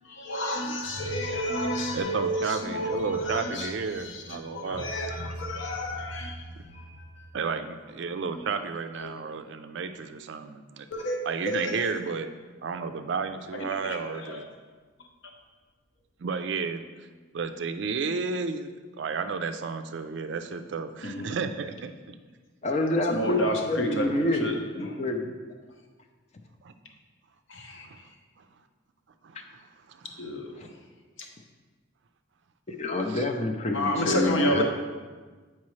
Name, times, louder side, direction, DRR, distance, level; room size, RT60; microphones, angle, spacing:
voice 1, 0.0-7.3 9.0-9.1 10.9-11.2 11.4-11.9 13.5-14.4 21.0-21.3 23.1-24.5 24.8-25.0 27.5-28.1 30.2-30.5 31.2-31.3 33.7-34.6, equal, 65° left, 2 dB, 0.9 m, -31 dB
voice 2, 1.9-4.9 7.3-10.9 11.2-12.3 12.6-14.4 16.2-17.1 17.3-18.7 19.0-22.2 23.4-23.5 26.6-26.7 27.8-28.1 28.4-28.5 29.2-30.1 33.1-33.3, right 5 dB, 60° right, 9 dB, 0.4 m, -32 dB
voice 3, 22.6-24.5 24.7-25.3 30.6-30.7 32.7-34.6, left 2 dB, 35° left, 4 dB, 0.5 m, -27 dB
8.4 x 4.6 x 3.1 m, 1.4 s
head